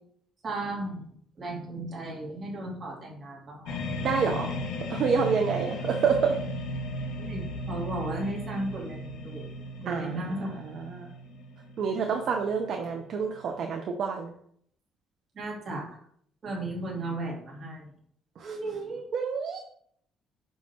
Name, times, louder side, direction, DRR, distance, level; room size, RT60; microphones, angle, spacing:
voice 1, 0.4-1.0 1.4-3.8 7.2-7.4 7.7-9.5 9.8-10.5 15.4-15.9 16.4-17.8 18.4-19.0, right 2 dB, 40° right, -3 dB, 2.7 m, -35 dB
sound 1, 3.6-13.7, left 1 dB, 85° left, 1.5 m, -36 dB
voice 2, 4.0-4.5 4.9-6.4 9.9-11.1 11.8-14.3 18.4-18.6 19.1-19.6, right 6 dB, 60° right, 3 dB, 0.7 m, -28 dB
6.3 x 5.8 x 2.9 m, 0.64 s
cardioid pair, 115°, 0 cm